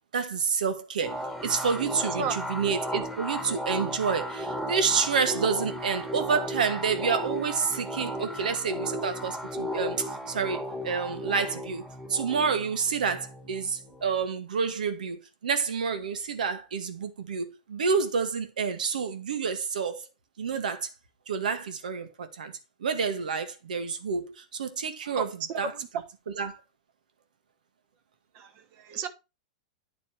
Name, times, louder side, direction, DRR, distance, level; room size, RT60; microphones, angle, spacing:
voice 1, 0.1-20.0 20.4-20.9 21.3-25.7 26.4-26.6, right 5 dB, 90° right, 1.4 m, -29 dB
sound 1, 1.0-14.2, equal, ahead, 1.5 m, -35 dB
voice 2, 25.0-25.9 28.3-29.1, right 5 dB, 45° right, 1.2 m, -33 dB
9.5 x 4.3 x 4.5 m
hypercardioid pair, 130°, 4 cm